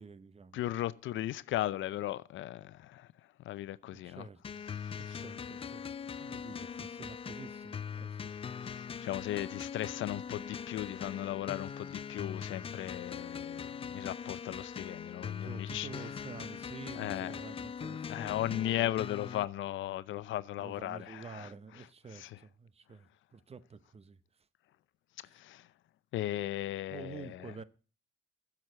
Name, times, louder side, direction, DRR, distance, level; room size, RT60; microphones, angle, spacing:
voice 1, 0.0-0.6 3.8-4.7 5.0-8.3 15.2-18.7 20.6-24.2 25.2-25.4 26.9-27.6, right 5 dB, 30° right, 0.8 m, -49 dB
voice 2, 0.5-3.1 3.4-4.2 5.1-5.2 8.6-15.9 17.0-17.3 18.1-21.5 22.1-22.3 25.3-25.7 26.1-27.4, left 14 dB, 75° left, 0.6 m, -36 dB
sound 1, 4.4-19.4, left 7 dB, 30° left, 0.4 m, -41 dB
7.8 x 7.3 x 7.9 m
cardioid pair, 90°, 20 cm